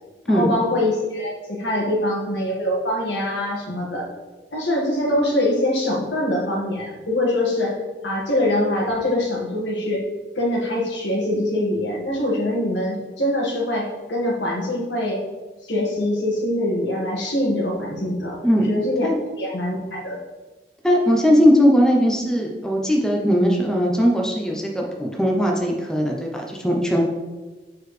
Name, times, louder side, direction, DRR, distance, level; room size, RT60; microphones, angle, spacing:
voice 1, 0.3-4.1 4.5-7.8 8.0-10.0 10.4-15.2 15.6-18.4 18.6-19.1 19.4-20.1, left 1 dB, 85° left, -3 dB, 1.7 m, -23 dB
voice 2, 20.8-27.1, equal, 5° left, -1 dB, 0.6 m, -19 dB
6.9 x 4.6 x 3.3 m, 1.2 s
head